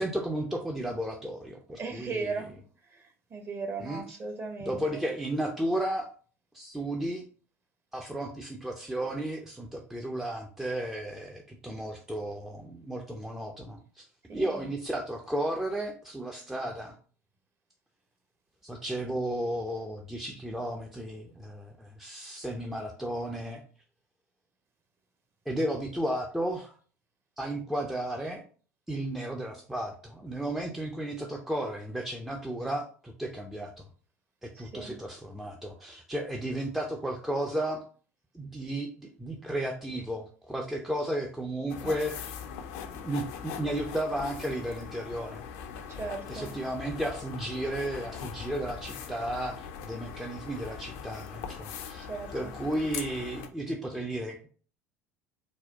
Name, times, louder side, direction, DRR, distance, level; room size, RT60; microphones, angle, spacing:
voice 1, 0.0-2.3 3.8-4.2 4.7-6.1 6.5-7.2 7.9-14.0 14.3-16.9 18.6-23.6 25.5-26.7 27.4-28.4 28.9-33.9 34.4-37.8 38.3-42.4 42.9-45.4 46.3-54.5, right 1 dB, 5° right, 1 dB, 0.5 m, -34 dB
voice 2, 1.7-2.5 2.9-5.1 14.3-14.7 34.5-34.9 45.9-46.5 52.0-52.6, right 4 dB, 30° right, 5 dB, 0.8 m, -37 dB
sound 1, 41.7-53.5, left 7 dB, 60° left, 0.5 m, -41 dB
4.1 x 2.2 x 3.7 m, 0.41 s
figure-of-eight pair, 70°, 8 cm